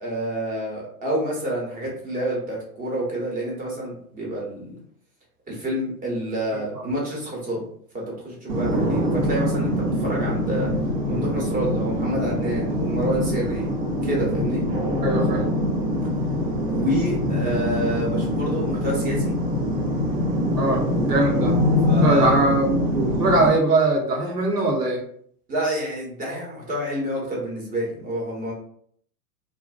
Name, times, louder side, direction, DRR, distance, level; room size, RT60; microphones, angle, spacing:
voice 1, 0.0-4.8 5.5-7.6 7.9-10.7 11.0-14.6 16.7-19.3 21.9-22.4 25.5-28.5, right 1 dB, 20° right, -3 dB, 0.8 m, -28 dB
sound 1, 8.5-23.5, left 1 dB, 35° right, 0.4 m, -24 dB
voice 2, 15.0-15.4 20.5-21.6 22.0-25.0, right 2 dB, 80° right, 0 dB, 0.9 m, -21 dB
2.6 x 2.1 x 2.3 m, 0.62 s
hypercardioid pair, 110°, 46 cm